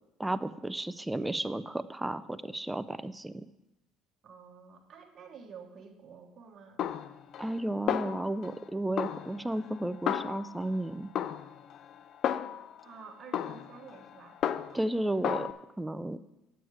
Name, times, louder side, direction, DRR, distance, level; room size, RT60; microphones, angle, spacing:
voice 1, 0.2-3.4 7.4-11.1 14.7-15.5 15.8-16.2, right 1 dB, 10° right, 14 dB, 0.4 m, -33 dB
voice 2, 4.2-6.8 12.8-14.4, right 5 dB, 40° right, 1 dB, 1.2 m, -50 dB
Snare drum, 6.8-7.6 7.9-8.6 9.0-10.8 11.2-12.8 13.3-14.9 15.2-15.5, left 9 dB, 55° left, 0.4 m, -34 dB
9.2 x 7.9 x 4.8 m, 0.94 s
supercardioid pair, 100°, 0 cm